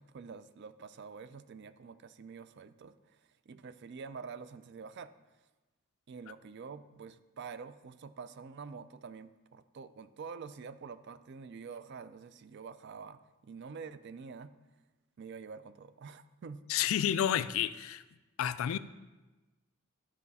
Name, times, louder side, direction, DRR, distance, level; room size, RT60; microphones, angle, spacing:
voice 1, 0.0-5.1 6.1-14.5 15.2-16.6, right 5 dB, 55° right, 13 dB, 0.4 m, -47 dB
voice 2, 16.7-18.0 18.4-18.8, left 10 dB, 70° left, 15 dB, 0.3 m, -30 dB
12.0 x 5.0 x 4.1 m, 1.2 s
head